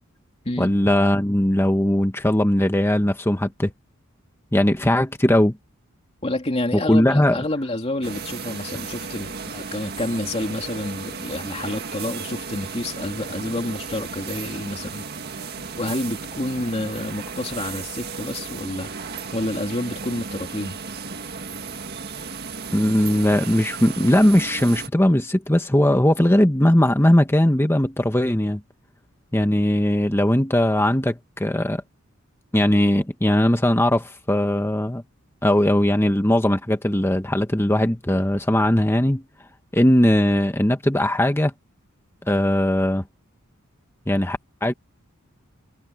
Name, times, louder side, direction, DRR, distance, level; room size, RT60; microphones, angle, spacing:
voice 1, 0.6-3.7 4.5-5.6 6.7-7.4 22.7-28.6 29.3-31.8 32.5-35.0 35.4-39.2 39.7-41.5 42.3-43.0 44.1-44.7, left 1 dB, 10° left, 1.2 m, -19 dB
voice 2, 6.2-15.0 15.3-15.5 15.8-20.8, left 1 dB, 30° left, 2.8 m, -29 dB
sound 1, 8.0-24.9, right 5 dB, 50° right, 1.8 m, -34 dB
head